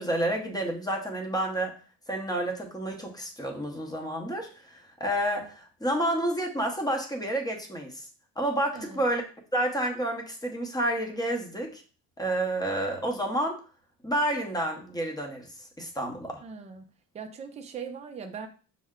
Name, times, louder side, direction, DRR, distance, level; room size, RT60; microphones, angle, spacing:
voice 1, 0.0-1.7 2.1-8.1 8.4-9.2 9.5-11.8 12.2-13.6 14.0-15.5 15.8-16.4, right 1 dB, 10° left, 0.7 m, -29 dB
voice 2, 8.7-9.1 16.4-18.5, right 6 dB, 20° right, 0.4 m, -40 dB
5.4 x 2.1 x 3.6 m
cardioid pair, 140°, 37 cm